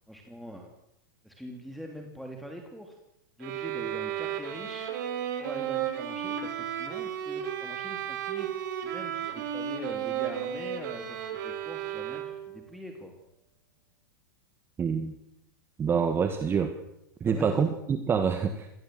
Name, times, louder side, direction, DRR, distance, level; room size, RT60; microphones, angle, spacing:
voice 1, 0.1-0.7 1.2-2.9 3.4-4.9 5.4-13.1 17.2-17.6, equal, ahead, 1 dB, 3.1 m, -43 dB
sound 1, 3.4-12.6, right 9 dB, 60° right, 5.0 m, -34 dB
voice 2, 14.8-15.1 15.8-16.7 17.2-18.7, right 6 dB, 20° right, 8 dB, 1.7 m, -26 dB
25.5 x 19.5 x 7.8 m, 0.84 s
hypercardioid pair, 135°, 11 cm